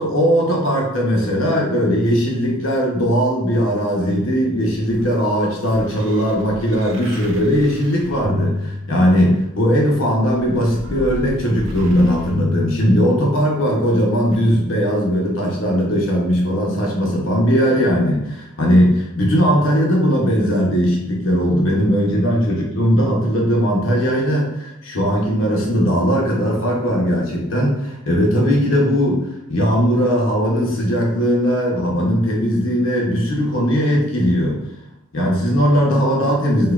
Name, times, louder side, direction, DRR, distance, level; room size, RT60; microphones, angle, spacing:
voice 1, 0.0-29.2 29.5-34.6 35.1-36.7, equal, 70° left, -2 dB, 0.8 m, -18 dB
sound 1, 4.6-9.5 10.3-13.6 14.3-14.4, left 1 dB, 70° right, 0.5 m, -31 dB
5.4 x 2.2 x 2.4 m, 0.89 s
head